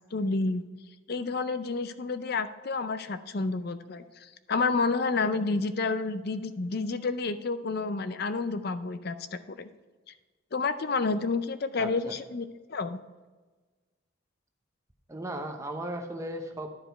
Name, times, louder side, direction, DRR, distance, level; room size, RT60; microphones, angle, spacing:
voice 1, 0.1-0.6 1.1-9.7 10.5-13.0, left 3 dB, 50° left, 11 dB, 0.5 m, -30 dB
voice 2, 11.8-12.1 15.1-16.7, right 1 dB, 15° right, 4 dB, 0.7 m, -36 dB
11.0 x 4.9 x 4.5 m, 1.3 s
head